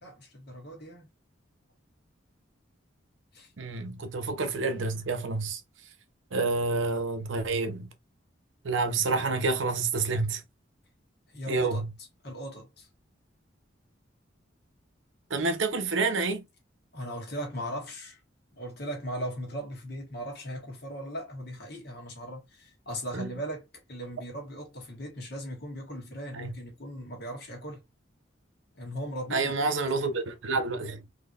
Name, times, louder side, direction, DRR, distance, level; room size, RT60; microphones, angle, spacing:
voice 1, 0.0-1.1 3.3-3.5 11.3-11.8 12.2-12.9 16.9-18.2 18.5-27.8 28.7-29.8, equal, 55° left, 1.4 m, -38 dB
voice 2, 3.6-5.6 6.3-7.9 8.6-10.4 11.5-11.9 15.3-16.5 23.1-23.3 26.3-26.5 29.3-31.0, right 3 dB, 75° right, 0.7 m, -28 dB
3.8 x 2.9 x 2.4 m
head